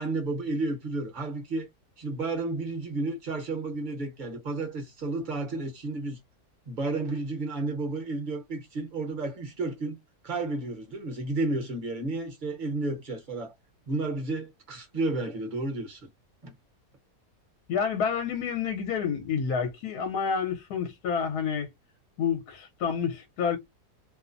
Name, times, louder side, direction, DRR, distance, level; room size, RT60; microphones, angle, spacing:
voice 1, 0.0-1.7 2.0-6.2 6.7-10.0 10.2-13.5 13.9-16.1 16.4-16.5, right 2 dB, 40° right, 0.8 m, -32 dB
voice 2, 17.7-21.7 22.2-23.6, left 6 dB, 75° left, 1.2 m, -29 dB
2.9 x 2.1 x 2.5 m
omnidirectional pair, 1.7 m